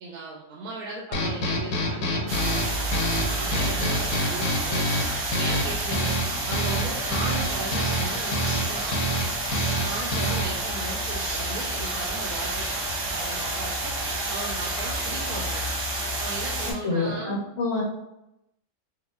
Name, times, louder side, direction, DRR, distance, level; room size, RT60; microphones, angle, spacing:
voice 1, 0.0-4.9 5.4-6.1 6.5-9.1 9.7-12.8 13.1-13.9 14.3-15.6 16.2-17.4, right 3 dB, 85° right, -2 dB, 1.1 m, -37 dB
sound 1, 1.1-10.7, equal, 85° left, 1.2 m, -28 dB
sound 2, 2.3-16.7, right 2 dB, 60° right, 1.2 m, -29 dB
voice 2, 16.8-17.8, left 3 dB, 65° left, -3 dB, 1.0 m, -27 dB
4.6 x 2.5 x 2.3 m, 0.86 s
omnidirectional pair, 1.5 m